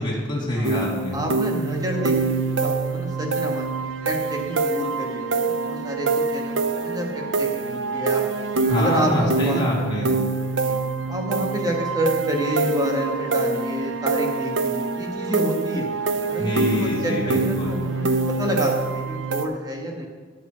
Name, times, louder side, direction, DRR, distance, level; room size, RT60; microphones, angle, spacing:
voice 1, 0.0-1.2 8.7-10.2 16.3-17.8, left 1 dB, 25° left, -5 dB, 2.6 m, -25 dB
sound 1, 0.6-19.5, right 4 dB, 90° right, 0.8 m, -25 dB
voice 2, 1.1-8.2 8.7-9.6 10.6-10.8 11.1-15.9 16.2-20.1, equal, 20° right, 1 dB, 1.8 m, -29 dB
10.5 x 8.0 x 6.4 m, 1.5 s
head